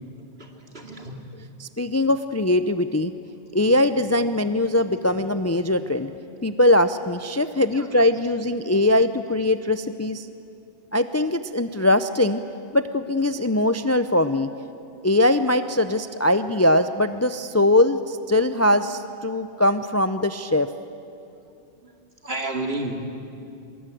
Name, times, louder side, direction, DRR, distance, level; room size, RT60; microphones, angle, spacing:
voice 1, 0.4-1.2 7.7-7.9 21.8-21.9 22.2-23.1, right 2 dB, 60° right, 3 dB, 2.7 m, -31 dB
voice 2, 1.6-3.1 3.5-6.1 6.4-10.3 10.9-12.4 12.7-14.5 15.0-20.7, left 1 dB, 20° left, 11 dB, 0.5 m, -21 dB
24.0 x 21.5 x 9.2 m, 2.6 s
omnidirectional pair, 1.1 m